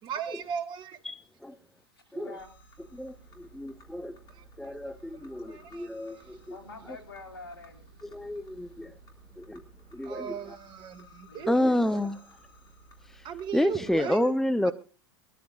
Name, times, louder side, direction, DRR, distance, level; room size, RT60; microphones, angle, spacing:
voice 1, 0.0-1.0 4.3-5.2 5.4-6.4 10.0-11.6 11.9-12.0 13.2-14.3 14.6-14.7, right 8 dB, 35° right, 1.8 m, -38 dB
voice 2, 1.0-1.6 2.1-2.4 2.9-4.2 4.6-6.6 8.1-8.9 9.4-9.6 9.9-10.4 11.5-12.2 13.1-13.2 13.5-14.7, left 1 dB, ahead, 0.7 m, -29 dB
voice 3, 1.6-2.5 3.2-3.3 5.5-5.9 6.4-8.1 8.5-8.8 11.3-12.1 13.7-14.1, left 3 dB, 80° left, 3.6 m, -48 dB
sound 1, 2.4-13.9, right 1 dB, 30° left, 3.5 m, -55 dB
22.5 x 13.5 x 2.4 m
hypercardioid pair, 95°, 13 cm